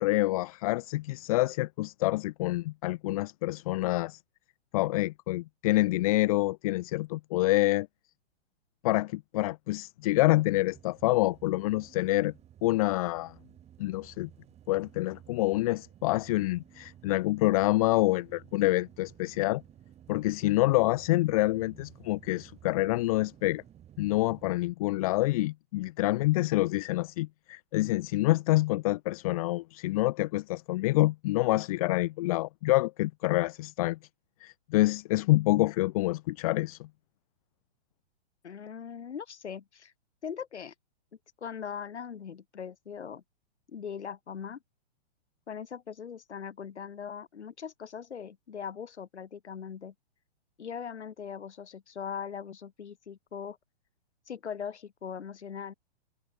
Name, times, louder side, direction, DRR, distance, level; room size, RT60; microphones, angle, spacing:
voice 1, 0.0-4.2 4.7-7.9 8.8-12.3 12.6-13.4 13.8-14.3 14.7-19.6 20.1-23.6 24.0-34.0 34.4-36.9, left 18 dB, 35° left, 0.5 m, -27 dB
sound 1, 10.4-24.5, right 11 dB, 20° right, 6.3 m, -55 dB
voice 2, 38.4-39.9 40.2-40.7 41.4-43.2 43.7-44.6 45.5-49.9 50.6-53.6 54.3-55.7, left 7 dB, 90° left, 3.1 m, -40 dB
hypercardioid pair, 145°, 33 cm